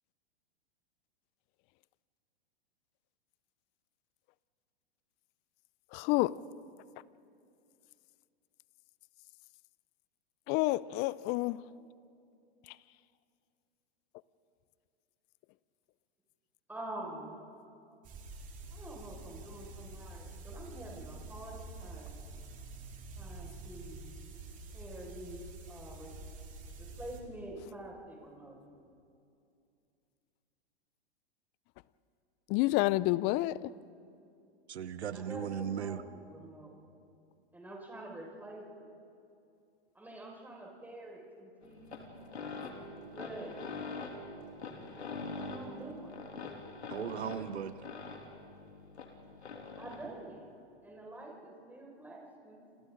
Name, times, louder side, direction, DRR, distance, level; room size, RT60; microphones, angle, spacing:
voice 1, 5.9-6.4 10.5-11.6 12.7-12.8 32.5-33.7, left 19 dB, 30° left, 0.5 m, -29 dB
voice 2, 16.7-17.4 18.7-22.2 23.2-24.2 24.7-25.4 25.7-26.1 26.8-28.6 35.1-36.7 37.5-38.9 39.9-42.1 43.1-43.5 45.2-46.2 49.8-50.4 50.8-52.6, right 1 dB, 5° right, 5.6 m, -47 dB
sound 1, 18.0-27.2, right 3 dB, 25° right, 3.1 m, -47 dB
voice 3, 34.7-36.0 46.9-47.7, right 8 dB, 80° right, 1.1 m, -37 dB
sound 2, 41.6-50.1, left 3 dB, 90° left, 3.2 m, -44 dB
28.5 x 27.5 x 3.9 m
hypercardioid pair, 115°, 32 cm